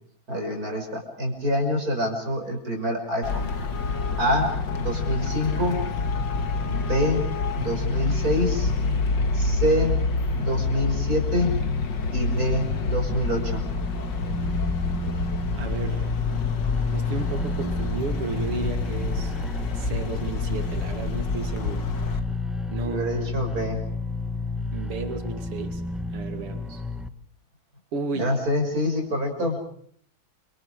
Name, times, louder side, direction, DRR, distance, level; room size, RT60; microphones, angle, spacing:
voice 1, 0.3-3.5 4.2-4.5 4.8-5.8 6.6-7.3 7.6-8.7 9.3-10.0 10.4-11.5 12.1-13.6 22.7-23.8 28.1-29.6, equal, 40° right, 3 dB, 6.0 m, -26 dB
Traffic noise roadway noise, 3.2-22.2, left 3 dB, 55° left, 2.4 m, -27 dB
sound 1, 13.1-27.1, left 3 dB, ahead, 0.9 m, -31 dB
voice 2, 15.6-16.1 16.9-19.3 19.7-21.9 22.7-23.4 24.7-25.8 26.1-26.8 27.9-28.4, right 4 dB, 85° right, 7 dB, 3.1 m, -33 dB
29.0 x 25.5 x 4.9 m, 0.64 s
omnidirectional pair, 2.4 m